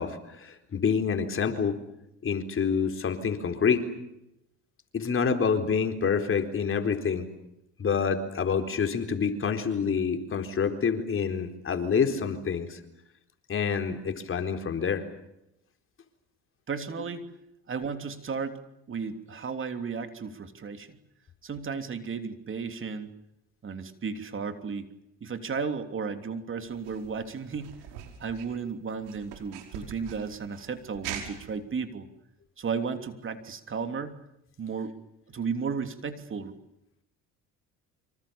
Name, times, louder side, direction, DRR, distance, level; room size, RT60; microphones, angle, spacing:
voice 1, 0.0-1.8 2.2-3.8 4.9-7.3 7.8-12.8 13.5-15.0, left 6 dB, 40° left, 7 dB, 4.1 m, -27 dB
voice 2, 16.7-17.3 17.7-18.6 18.9-21.0 21.4-23.2 23.6-24.9 25.2-27.7 28.2-32.1 32.6-34.2 34.6-34.9 35.3-36.6, right 5 dB, 40° right, 8 dB, 3.2 m, -34 dB
sound 1, 26.6-31.6, right 9 dB, 90° right, 5.4 m, -43 dB
28.0 x 26.0 x 7.1 m, 0.83 s
supercardioid pair, 85°, 31 cm